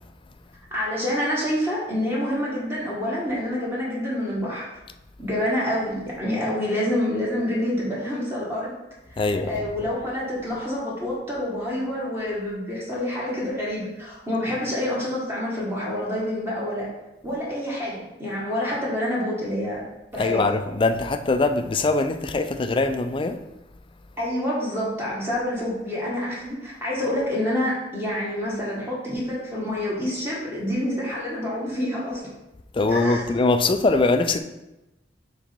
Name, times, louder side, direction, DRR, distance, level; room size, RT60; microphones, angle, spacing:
voice 1, 0.7-4.7 5.2-8.7 9.1-16.9 17.2-19.8 20.1-20.4 24.2-32.3 32.9-33.2, left 1 dB, 15° right, 1.7 m, -27 dB
voice 2, 9.2-9.7 20.2-23.4 32.7-34.4, left 3 dB, 30° left, 0.4 m, -22 dB
5.0 x 4.1 x 5.3 m
head